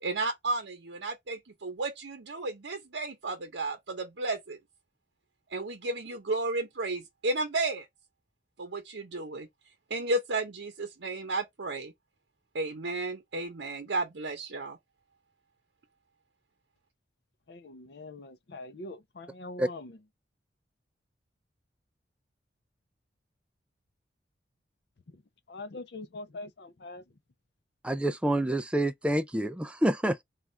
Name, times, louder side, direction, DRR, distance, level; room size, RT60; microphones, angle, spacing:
voice 1, 0.0-4.6 5.5-7.9 8.6-9.5 9.9-11.9 12.5-14.8, right 2 dB, 80° right, 0.8 m, -33 dB
voice 2, 17.5-19.9 25.5-27.0, left 2 dB, 60° left, 0.5 m, -43 dB
voice 3, 27.8-30.2, right 1 dB, 5° right, 0.3 m, -27 dB
3.5 x 2.4 x 4.2 m
head